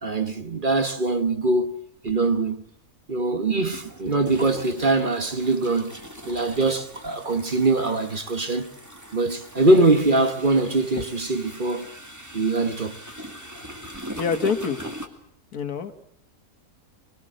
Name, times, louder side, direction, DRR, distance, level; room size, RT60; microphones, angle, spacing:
voice 1, 0.0-1.7 2.0-2.6 3.1-5.9 6.2-8.7 9.1-11.9 12.3-13.0, right 2 dB, 35° right, 1.3 m, -22 dB
sound 1, 2.0-2.2 3.5-15.1, equal, 10° right, 2.4 m, -41 dB
voice 2, 14.2-14.8 15.5-15.9, left 5 dB, 80° left, 2.0 m, -26 dB
23.5 x 23.0 x 7.7 m
omnidirectional pair, 1.6 m